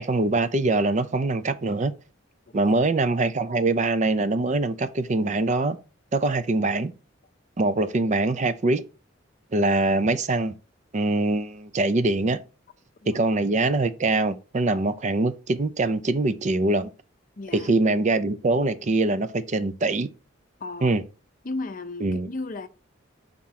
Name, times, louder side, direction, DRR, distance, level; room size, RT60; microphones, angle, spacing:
voice 1, 0.0-1.9 2.5-5.8 6.1-6.9 7.6-8.8 9.5-10.5 10.9-12.4 13.1-16.9 17.5-20.1 20.8-21.0 22.0-22.3, right 2 dB, 35° right, 0.5 m, -23 dB
voice 2, 2.5-2.8 13.0-13.2 17.4-17.7 20.6-20.9 21.4-22.7, left 3 dB, 40° left, 0.6 m, -35 dB
5.8 x 3.7 x 5.7 m
head